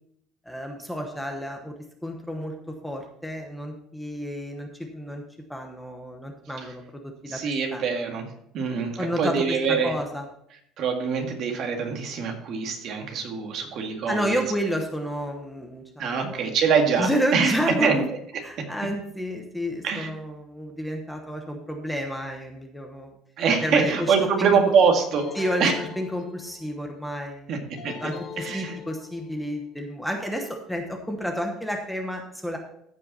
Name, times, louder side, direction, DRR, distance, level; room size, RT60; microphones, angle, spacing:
voice 1, 0.4-1.7 2.0-5.2 5.5-7.4 7.7-7.8 9.0-10.3 14.1-16.4 17.0-18.1 18.4-23.1 23.6-24.6 25.3-27.7 28.0-32.6, equal, ahead, 3 dB, 1.0 m, -30 dB
voice 2, 7.3-8.3 8.5-9.9 10.8-14.4 16.0-18.0 18.6-18.7 19.8-20.1 23.4-25.8 27.5-27.6 27.8-27.9 28.4-28.8, right 5 dB, 50° right, 3 dB, 1.9 m, -24 dB
sound 1, 25.2-26.7 27.8-29.4, left 7 dB, 50° left, 1.5 m, -40 dB
14.5 x 5.4 x 4.2 m, 0.72 s
cardioid pair, 150°, 0 cm